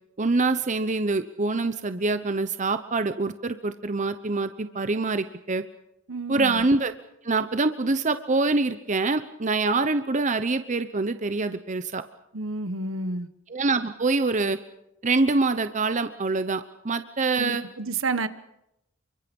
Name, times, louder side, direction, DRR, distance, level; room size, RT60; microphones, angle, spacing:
voice 1, 0.2-5.6 6.3-6.9 7.2-12.0 13.5-14.6 15.0-17.6, right 3 dB, 35° right, 10 dB, 0.8 m, -25 dB
voice 2, 6.1-6.6 12.3-13.3 17.4-18.3, right 3 dB, 75° right, 12 dB, 1.3 m, -30 dB
28.5 x 24.0 x 5.4 m, 0.84 s
head